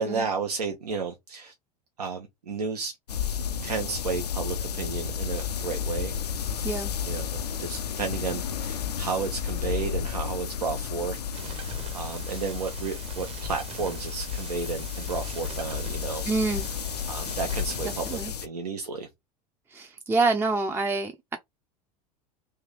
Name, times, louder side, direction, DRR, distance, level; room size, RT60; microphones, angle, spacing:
voice 1, 0.0-1.5 2.0-2.9 3.6-6.1 6.6-6.7 7.0-16.7 17.1-19.1, right 5 dB, 80° right, 0.7 m, -33 dB
sound 1, 3.1-18.5, left 8 dB, 85° left, 0.4 m, -32 dB
sound 2, 11.3-18.2, right 6 dB, 30° right, 0.8 m, -43 dB
voice 2, 16.3-16.7 18.1-18.3 19.7-21.4, right 3 dB, 10° right, 0.4 m, -26 dB
3.3 x 2.8 x 3.3 m
figure-of-eight pair, 80°, 20 cm